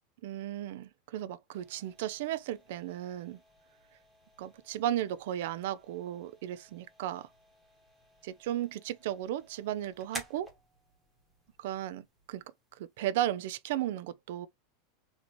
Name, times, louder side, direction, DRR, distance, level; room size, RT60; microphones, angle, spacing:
voice 1, 0.2-3.4 4.4-7.3 8.2-10.5 11.6-12.4 12.8-14.5, right 12 dB, 65° right, 0.4 m, -35 dB
sound 1, 1.5-13.1, right 1 dB, 5° right, 1.5 m, -53 dB
4.3 x 2.8 x 3.0 m
supercardioid pair, 155°, 0 cm